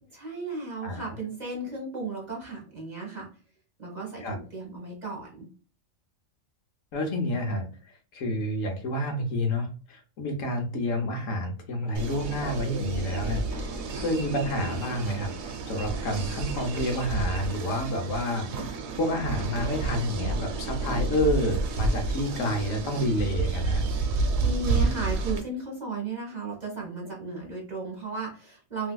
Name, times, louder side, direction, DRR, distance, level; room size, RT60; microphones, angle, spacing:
voice 1, 0.1-3.3 3.8-5.5 24.1-28.9, right 3 dB, 35° right, -2 dB, 1.0 m, -35 dB
voice 2, 6.9-7.7 8.1-15.3 15.6-23.9, left 1 dB, 75° left, 3 dB, 1.2 m, -29 dB
sound 1, 11.9-25.4, right 3 dB, 90° right, 1.1 m, -30 dB
3.4 x 2.7 x 2.2 m, 0.38 s
omnidirectional pair, 1.4 m